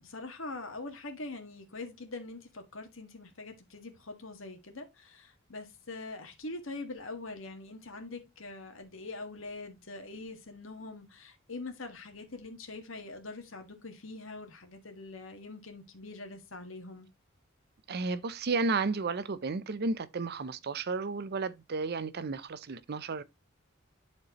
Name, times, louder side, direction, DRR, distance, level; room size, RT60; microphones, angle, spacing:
voice 1, 0.0-17.1, left 3 dB, 70° left, 1.8 m, -43 dB
voice 2, 17.9-23.2, right 4 dB, 50° right, 0.6 m, -33 dB
10.5 x 4.5 x 3.0 m
head